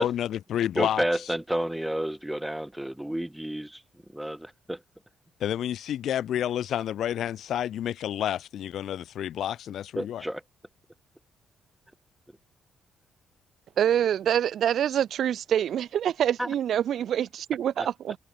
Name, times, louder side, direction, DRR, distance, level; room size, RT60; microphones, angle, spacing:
voice 1, 0.0-1.3 5.4-10.2, left 10 dB, 70° left, 0.6 m, -30 dB
voice 2, 0.8-3.8 4.1-4.8 10.0-10.4 16.4-16.5 17.8-17.9, right 1 dB, 5° right, 1.0 m, -30 dB
voice 3, 13.8-18.2, right 10 dB, 65° right, 1.1 m, -25 dB
supercardioid pair, 60°, 0 cm